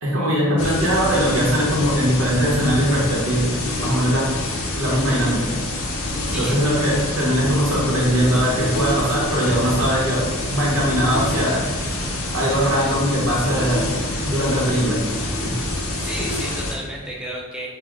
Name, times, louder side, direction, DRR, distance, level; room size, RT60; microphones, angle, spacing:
voice 1, 0.0-4.3 4.8-5.5 6.3-10.2 10.5-11.6 12.3-13.9 14.2-15.6, equal, 75° right, -4 dB, 1.0 m, -20 dB
sound 1, 0.6-16.7, left 1 dB, 80° left, 0.6 m, -27 dB
voice 2, 6.3-6.6 16.0-17.7, right 1 dB, 5° right, -3 dB, 0.4 m, -32 dB
3.3 x 2.2 x 3.5 m, 1.4 s
head